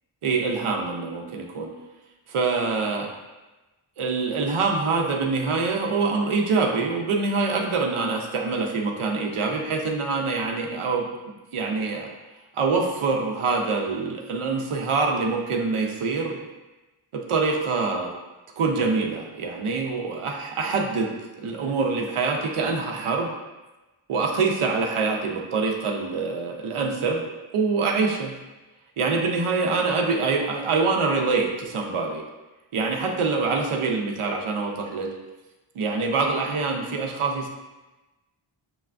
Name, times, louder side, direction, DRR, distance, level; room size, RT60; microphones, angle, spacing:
voice 1, 0.2-1.7 2.3-3.1 4.0-12.1 12.5-16.4 17.1-18.1 18.6-21.1 21.4-23.3 24.1-27.2 27.5-28.4 29.0-32.2 32.7-35.1 35.7-37.5, right 4 dB, 85° right, 2 dB, 0.6 m, -25 dB
5.9 x 2.4 x 2.2 m, 1.1 s
wide cardioid pair, 50°, 49 cm